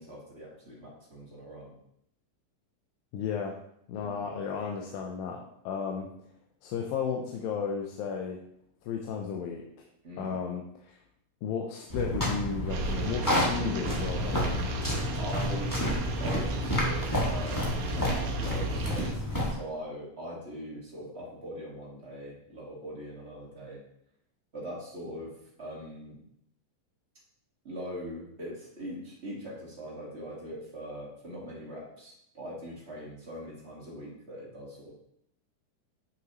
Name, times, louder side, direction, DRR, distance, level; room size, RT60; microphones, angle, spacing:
voice 1, 0.0-1.7 3.9-4.2 10.0-10.4 15.2-15.8 16.2-17.6 18.0-23.8 24.5-26.2 27.6-34.9, equal, 30° right, -5 dB, 1.3 m, -41 dB
voice 2, 3.1-3.6 3.9-6.1 6.6-8.4 8.9-9.9 10.2-11.0 11.4-14.6, left 6 dB, 90° left, 1 dB, 2.5 m, -34 dB
sound 1, 11.9-19.5, left 1 dB, 20° left, 0.5 m, -30 dB
sound 2, 12.7-19.1, right 3 dB, 75° right, 2.6 m, -37 dB
9.5 x 6.1 x 3.0 m, 0.74 s
omnidirectional pair, 4.0 m